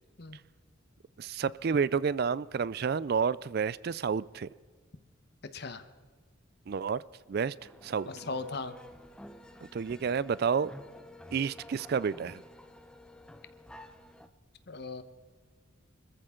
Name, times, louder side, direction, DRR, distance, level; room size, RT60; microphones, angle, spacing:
voice 1, 1.2-4.5 6.7-7.0 7.3-7.5 7.8-8.1 9.6-10.7 11.3-12.4, right 6 dB, 50° right, 20 dB, 0.3 m, -30 dB
voice 2, 5.5-5.8 8.1-8.7 14.7-15.0, left 3 dB, 50° left, 11 dB, 1.0 m, -38 dB
sound 1, 7.0-10.0, right 1 dB, 85° right, 4.0 m, -62 dB
sound 2, 7.6-14.3, left 1 dB, 5° left, 0.7 m, -51 dB
25.5 x 14.5 x 3.8 m, 1.5 s
head